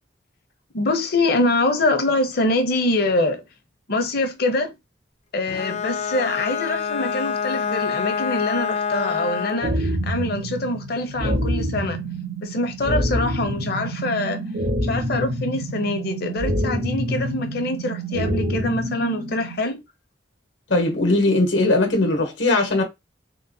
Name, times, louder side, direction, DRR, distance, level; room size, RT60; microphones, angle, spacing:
voice 1, 0.7-3.4 3.9-4.7 5.3-12.0 12.4-14.4 14.8-19.8, left 2 dB, 60° left, 0.7 m, -24 dB
Bowed string instrument, 5.5-9.8, left 6 dB, 35° left, 0.4 m, -26 dB
sound 1, 9.6-19.6, right 1 dB, 90° right, 1.4 m, -26 dB
voice 2, 20.7-22.8, left 2 dB, 85° left, 1.1 m, -19 dB
3.8 x 2.2 x 2.6 m
head